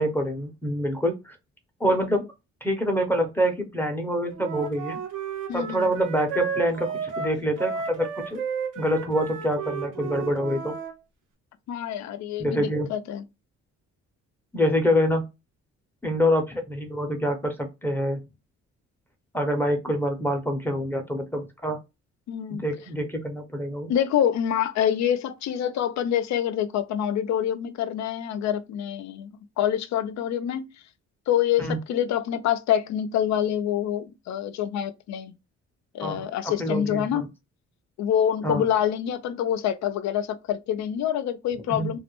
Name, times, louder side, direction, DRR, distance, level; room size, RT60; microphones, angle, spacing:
voice 1, 0.0-1.4 1.8-2.3 2.6-5.0 5.5-8.4 8.8-10.7 12.4-12.9 14.5-15.3 16.0-18.2 19.3-21.8 22.5-23.9 31.6-31.8 36.0-36.2 36.6-37.3 38.4-38.6 41.7-42.0, equal, 5° left, 0.6 m, -26 dB
Wind instrument woodwind instrument, 4.3-10.9, right 6 dB, 85° right, 0.8 m, -33 dB
voice 2, 5.5-5.9 11.7-13.2 22.3-22.6 23.9-29.3 29.6-30.7 31.3-35.3 35.9-37.2 38.0-42.0, left 10 dB, 65° left, 0.4 m, -26 dB
2.3 x 2.1 x 2.9 m
cardioid pair, 90°, 30 cm